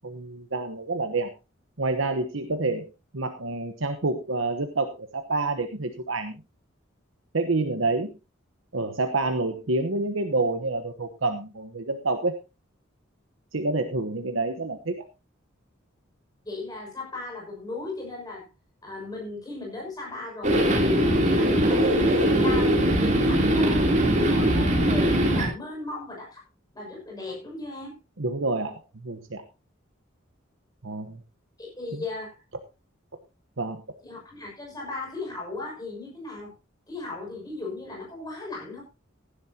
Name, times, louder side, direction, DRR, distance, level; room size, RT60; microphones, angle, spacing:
voice 1, 0.0-1.3 1.8-2.9 3.1-6.4 7.3-8.1 8.7-12.3 13.5-14.9 28.2-29.4 30.8-31.2 31.9-32.0 33.6-33.8, right 3 dB, 75° right, 6 dB, 1.1 m, -28 dB
voice 2, 16.4-18.5 18.8-23.9 24.1-26.4 26.7-28.0 31.6-32.3 34.0-36.5 36.9-38.8, left 3 dB, 20° left, -1 dB, 6.2 m, -36 dB
sound 1, 20.4-25.5, right 1 dB, 35° right, 3.3 m, -21 dB
16.0 x 11.5 x 2.9 m, 0.27 s
head